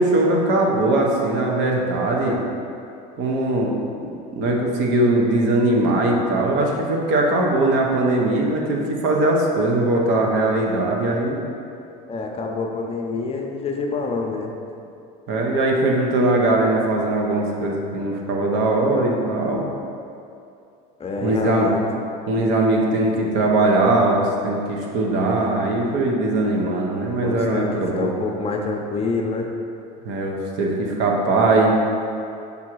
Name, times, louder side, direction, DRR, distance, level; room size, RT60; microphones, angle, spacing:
voice 1, 0.0-2.4 3.2-11.4 15.3-19.7 21.2-21.7 22.3-28.1 30.0-31.7, right 2 dB, 65° right, 0 dB, 1.0 m, -20 dB
voice 2, 12.1-14.5 21.0-21.8 27.2-29.5, left 3 dB, 30° left, 1 dB, 0.7 m, -27 dB
5.5 x 3.7 x 4.6 m, 2.6 s
supercardioid pair, 100°, 21 cm